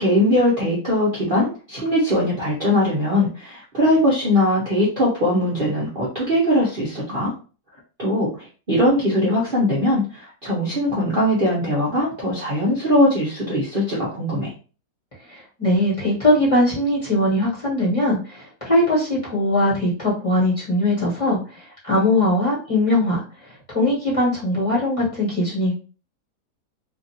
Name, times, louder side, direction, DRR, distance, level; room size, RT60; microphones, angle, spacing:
voice 1, 0.0-7.3 8.0-14.5, left 1 dB, 40° right, -7 dB, 0.8 m, -20 dB
voice 2, 15.3-21.4 21.8-23.2 23.7-25.7, left 1 dB, 20° left, -6 dB, 1.3 m, -20 dB
2.9 x 2.5 x 2.7 m, 0.36 s
omnidirectional pair, 1.8 m